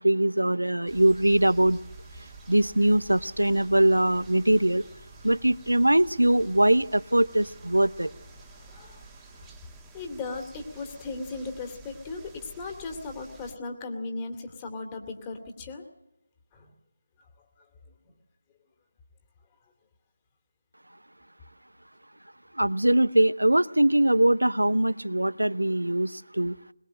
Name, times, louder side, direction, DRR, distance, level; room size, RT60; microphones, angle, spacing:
voice 1, 0.0-1.8 2.5-4.8 5.2-8.1 22.5-26.6, right 1 dB, 90° right, 16 dB, 0.9 m, -22 dB
sound 1, 0.9-13.6, right 3 dB, 10° right, 1.6 m, -49 dB
voice 2, 8.7-9.0 9.9-15.8 16.5-16.7, left 3 dB, 20° left, 3 dB, 2.5 m, -37 dB
21.5 x 21.0 x 7.7 m, 0.87 s
figure-of-eight pair, 155°, 0 cm